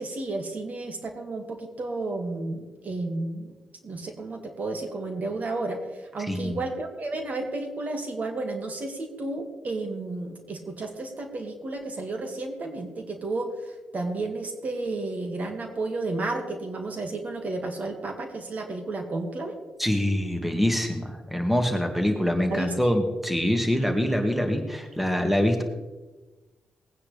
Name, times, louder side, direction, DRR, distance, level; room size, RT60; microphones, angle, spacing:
voice 1, 0.0-3.5 3.8-5.8 6.1-13.5 13.9-19.6 22.0-22.1 22.5-22.9, right 2 dB, 50° right, 4 dB, 2.2 m, -32 dB
voice 2, 6.2-6.6 19.8-25.6, equal, 5° right, 4 dB, 2.0 m, -25 dB
19.5 x 9.6 x 3.5 m, 1.2 s
supercardioid pair, 50°, 3 cm